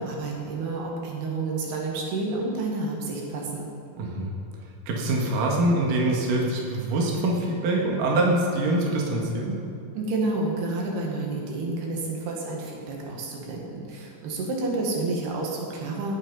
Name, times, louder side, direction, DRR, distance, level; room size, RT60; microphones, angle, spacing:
voice 1, 0.0-3.7 9.9-16.2, right 2 dB, 85° right, -1 dB, 4.0 m, -30 dB
voice 2, 4.0-4.3 4.9-9.6, right 2 dB, 65° right, -2 dB, 3.3 m, -24 dB
18.0 x 9.1 x 5.5 m, 2.7 s
omnidirectional pair, 4.5 m